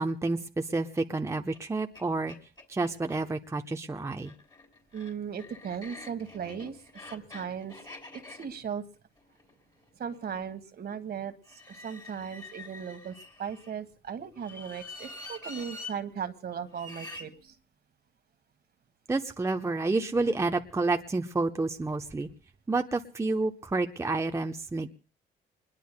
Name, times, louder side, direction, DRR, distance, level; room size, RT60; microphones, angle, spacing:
voice 1, 0.0-2.4 2.7-4.3 19.1-22.3 22.7-24.9, right 3 dB, 15° right, 5 dB, 0.8 m, -29 dB
sound 1, 1.5-1.6 1.9-2.0 2.3-3.2 4.1-10.3 11.4-13.7 14.4-15.9 16.7-17.3, left 2 dB, 20° left, 3.3 m, -46 dB
voice 2, 4.9-7.8 8.1-8.8 10.0-11.3 11.7-17.5, right 7 dB, 55° right, 10 dB, 1.5 m, -37 dB
26.5 x 21.0 x 2.2 m, 0.36 s
cardioid pair, 90°, 20 cm